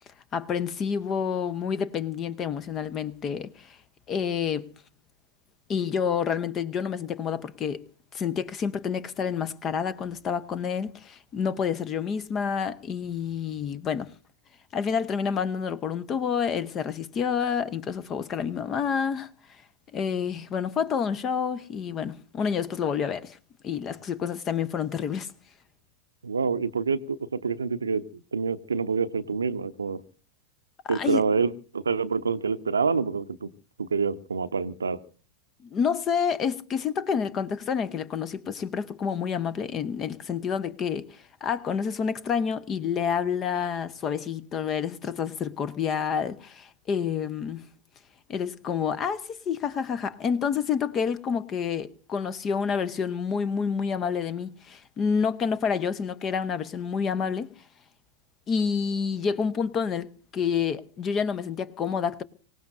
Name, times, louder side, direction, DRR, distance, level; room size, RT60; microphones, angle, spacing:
voice 1, 0.3-3.8 4.1-4.7 5.7-7.8 8.1-14.1 14.7-19.3 19.9-23.4 23.6-25.3 30.8-31.2 35.7-47.7 48.3-57.5 58.5-62.2, left 7 dB, 30° left, 1.0 m, -28 dB
voice 2, 26.2-30.0 30.9-33.5 33.8-35.0, right 5 dB, 75° right, 0.8 m, -27 dB
25.0 x 17.5 x 2.6 m
figure-of-eight pair, 90°, 0 cm